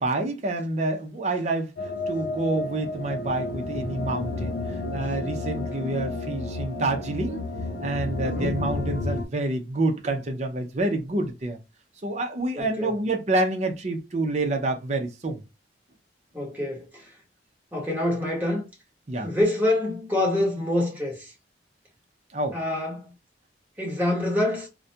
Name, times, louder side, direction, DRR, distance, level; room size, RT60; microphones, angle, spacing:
voice 1, 0.0-7.4 7.8-11.6 12.0-15.4 19.1-19.3 22.3-22.6, right 2 dB, 40° right, 0.5 m, -28 dB
sound 1, 1.8-9.2, left 3 dB, 65° left, 0.4 m, -31 dB
voice 2, 8.2-8.6 12.5-12.9 16.3-17.1 17.7-18.6 19.2-21.3 22.5-23.1 23.8-24.7, left 1 dB, 10° right, 1.0 m, -26 dB
2.4 x 2.1 x 2.7 m
head